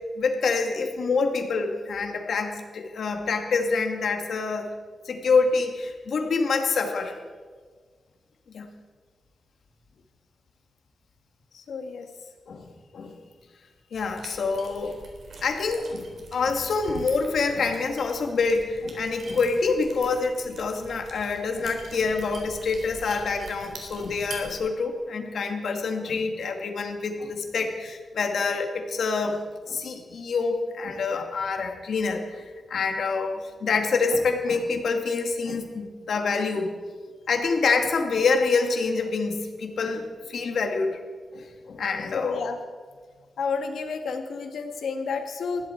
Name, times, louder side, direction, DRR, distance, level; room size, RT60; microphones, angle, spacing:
voice 1, 0.2-4.7 5.1-7.1 8.5-8.7 12.5-13.2 13.9-15.0 15.4-32.4 32.7-36.7 37.3-41.0 41.3-42.4, left 4 dB, 70° left, 4 dB, 2.2 m, -26 dB
voice 2, 11.5-12.1 42.1-42.6 43.4-45.7, left 5 dB, 85° left, 5 dB, 1.9 m, -31 dB
sound 1, 13.9-24.6, right 3 dB, 55° right, 3.7 m, -44 dB
20.0 x 15.5 x 4.6 m, 1.5 s
wide cardioid pair, 145°, 0 cm